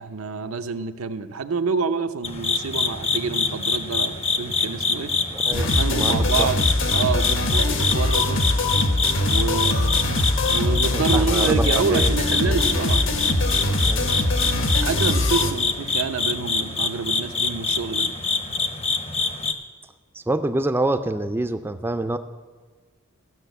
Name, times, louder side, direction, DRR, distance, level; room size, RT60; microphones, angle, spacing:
voice 1, 0.0-5.1 5.5-6.6 6.9-8.4 9.3-10.1 10.5-13.1 14.8-18.1, right 5 dB, 85° right, 8 dB, 0.7 m, -27 dB
sound 1, 2.2-19.5, left 4 dB, 30° left, 0.7 m, -25 dB
voice 2, 5.3-6.5 10.9-12.6 13.8-14.1 20.1-22.2, right 2 dB, 10° right, 8 dB, 0.4 m, -27 dB
sound 2, 5.5-15.5, left 1 dB, 65° left, 1.1 m, -22 dB
14.0 x 6.3 x 8.0 m, 1.4 s
head